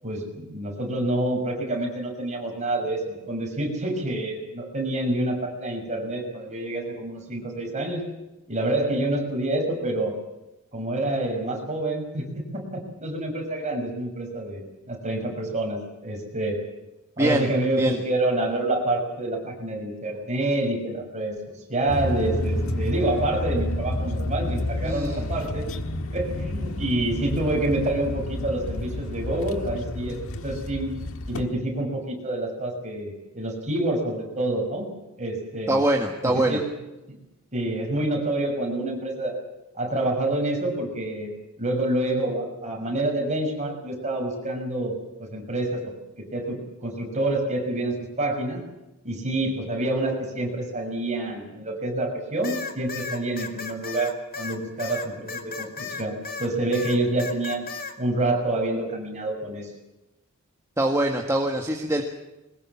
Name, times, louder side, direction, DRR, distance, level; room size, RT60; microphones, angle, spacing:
voice 1, 0.0-8.1 8.5-10.2 10.7-16.6 17.2-25.6 26.1-30.2 30.4-31.0 31.3-34.9 35.2-35.8 36.2-36.7 37.1-37.2 37.5-39.3 39.8-45.9 46.3-48.6 49.0-57.7 58.0-59.7, right 1 dB, 35° right, 1 dB, 6.4 m, -27 dB
sound 1, 21.9-31.5, left 1 dB, 70° left, 1.6 m, -30 dB
voice 2, 24.8-25.2 35.7-36.6 60.8-62.0, right 1 dB, 15° right, 2 dB, 1.6 m, -23 dB
sound 2, 52.4-56.5 56.7-57.9, left 5 dB, 45° left, 2.4 m, -34 dB
22.0 x 20.0 x 7.4 m, 0.99 s
head